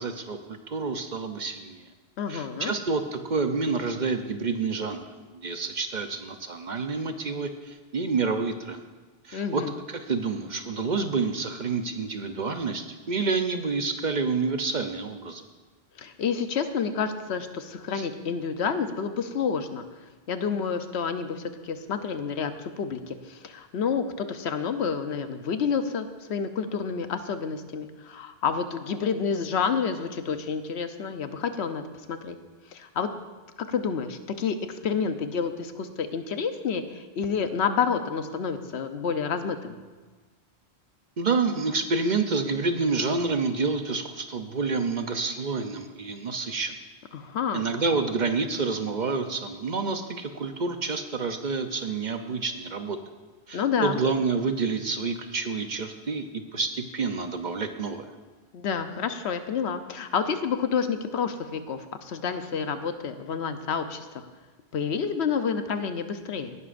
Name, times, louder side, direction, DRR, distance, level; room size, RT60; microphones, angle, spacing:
voice 1, 0.0-1.9 2.3-5.0 5.3-8.8 9.2-9.6 9.9-15.4 17.9-18.1 41.2-46.7 47.5-53.0 53.5-58.1, right 4 dB, 50° right, 7 dB, 0.8 m, -28 dB
voice 2, 2.2-2.7 9.3-9.8 16.0-19.9 20.3-31.8 32.1-32.4 32.7-33.1 33.6-39.8 47.1-47.6 53.5-54.0 58.5-64.1 64.7-66.6, left 6 dB, 80° left, 9 dB, 1.0 m, -29 dB
18.0 x 11.0 x 2.5 m, 1.4 s
omnidirectional pair, 1.1 m